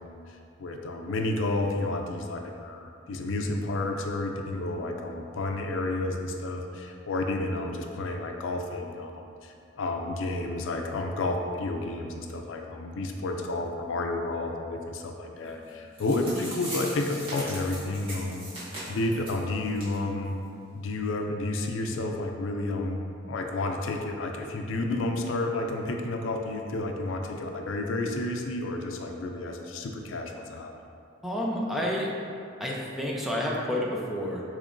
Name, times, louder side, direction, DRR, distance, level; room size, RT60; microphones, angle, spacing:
voice 1, 0.0-18.5 18.9-20.4 20.7-23.0 23.3-30.7, left 2 dB, 85° left, 3 dB, 0.4 m, -31 dB
sound 1, 15.7-15.8 16.0-19.4 19.8-19.9 20.2-20.3 20.8-20.9, right 1 dB, 30° right, 1.5 m, -39 dB
voice 2, 31.2-32.1 32.6-34.4, left 1 dB, ahead, -3 dB, 0.5 m, -29 dB
6.5 x 3.0 x 2.5 m, 2.4 s
head